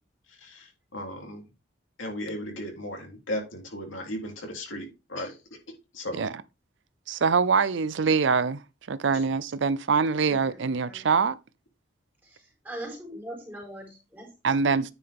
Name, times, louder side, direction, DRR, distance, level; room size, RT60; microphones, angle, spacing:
voice 1, 0.3-1.4 2.0-5.4 5.9-6.2, left 1 dB, 85° left, 3.1 m, -36 dB
voice 2, 7.1-8.6 8.9-11.4 14.4-14.9, right 5 dB, 70° right, 0.5 m, -24 dB
voice 3, 10.3-11.1 12.2-14.3, right 1 dB, 10° right, 4.3 m, -41 dB
9.6 x 5.7 x 3.5 m
head